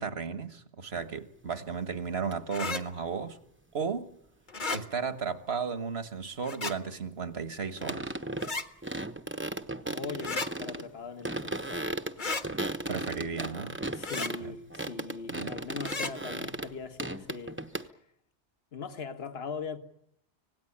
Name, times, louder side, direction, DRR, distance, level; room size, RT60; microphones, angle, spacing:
voice 1, 0.0-3.4 3.7-4.1 4.7-8.1 12.9-13.8 14.4-14.5 15.3-15.5, right 5 dB, 65° right, 1.7 m, -34 dB
sound 1, 1.0-1.1 2.3-2.4 7.8-8.6 8.8-10.9 11.2-14.4 14.7-16.7 17.0-17.9, right 1 dB, 10° right, 0.9 m, -36 dB
sound 2, 2.5-2.8 4.5-4.8 6.4-6.7 8.4-8.7 10.2-10.5 12.2-12.4 14.0-14.3 15.8-16.1, left 3 dB, 45° left, 1.6 m, -33 dB
voice 2, 9.9-11.9 13.9-18.0 18.7-19.8, left 5 dB, 60° left, 1.7 m, -40 dB
25.5 x 18.0 x 9.9 m
omnidirectional pair, 1.2 m